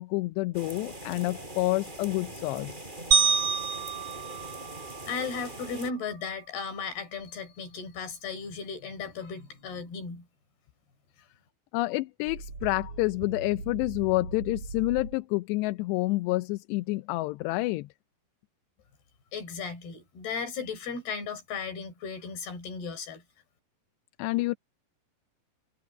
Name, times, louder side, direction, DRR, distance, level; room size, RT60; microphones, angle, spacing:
voice 1, 0.0-2.9 11.7-17.9 24.2-24.5, left 21 dB, 80° left, 2.8 m, -28 dB
sound 1, 0.5-5.9, right 1 dB, 10° right, 5.0 m, -42 dB
sound 2, 3.1-5.5, right 6 dB, 65° right, 2.1 m, -27 dB
voice 2, 5.1-10.3 19.3-23.2, left 5 dB, 60° left, 6.7 m, -36 dB
sound 3, 12.3-15.2, right 3 dB, 40° right, 6.9 m, -40 dB
omnidirectional pair, 5.1 m